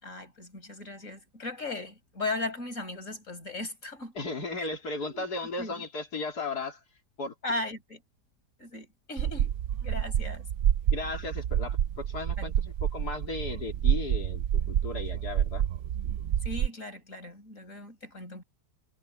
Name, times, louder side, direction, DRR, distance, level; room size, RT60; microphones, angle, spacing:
voice 1, 0.0-4.1 4.6-4.7 5.1-5.2 5.6-5.9 7.4-8.0 8.6-9.5 9.8-10.4 12.4-12.6 16.4-18.4, left 2 dB, 45° left, 5.7 m, -37 dB
voice 2, 4.2-6.8 7.2-7.3 10.9-15.6, left 3 dB, 65° left, 3.4 m, -36 dB
sound 1, 9.2-16.7, right 10 dB, 75° right, 0.6 m, -28 dB
omnidirectional pair, 1.9 m